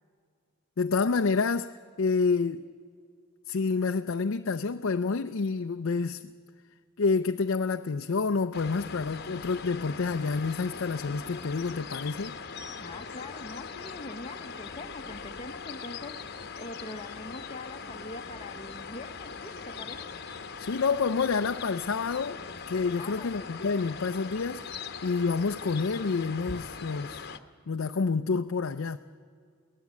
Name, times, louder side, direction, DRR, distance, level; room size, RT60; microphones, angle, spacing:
voice 1, 0.8-2.6 3.5-6.2 7.0-12.4 20.6-22.4 22.7-24.7 25.0-27.2 27.7-29.0, left 4 dB, 65° left, 0.5 m, -28 dB
sound 1, 8.5-27.4, left 5 dB, 50° left, 1.0 m, -41 dB
voice 2, 12.8-16.2 16.6-20.0 23.0-23.5, left 2 dB, 30° left, 0.9 m, -43 dB
23.0 x 17.5 x 8.3 m
head